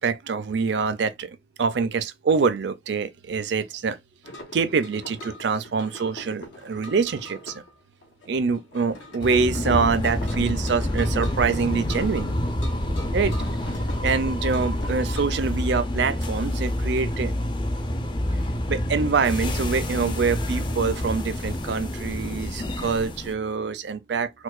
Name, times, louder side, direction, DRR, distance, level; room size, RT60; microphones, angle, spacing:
voice 1, 0.0-4.0 4.5-7.6 8.3-12.3 13.1-13.3 14.0-17.3 18.7-24.4, right 5 dB, 65° right, 0.4 m, -25 dB
sound 1, 4.2-15.2, left 1 dB, 80° left, 0.9 m, -42 dB
sound 2, 9.2-23.3, left 1 dB, 25° left, 0.4 m, -27 dB
4.4 x 2.2 x 2.4 m
head